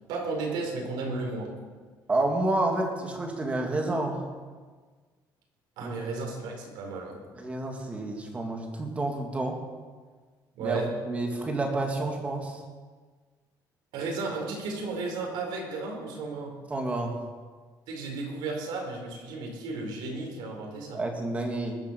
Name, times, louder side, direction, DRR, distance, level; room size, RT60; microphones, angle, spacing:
voice 1, 0.1-1.5 5.8-7.2 10.5-10.9 13.9-16.6 17.9-21.0, right 3 dB, 85° right, 1 dB, 4.5 m, -34 dB
voice 2, 2.1-4.2 5.8-6.0 7.3-9.6 10.6-10.8 11.1-12.6 16.7-17.2 20.9-21.8, right 2 dB, 15° right, 2 dB, 2.2 m, -29 dB
20.5 x 8.2 x 7.0 m, 1.5 s
cardioid pair, 170°, 8 cm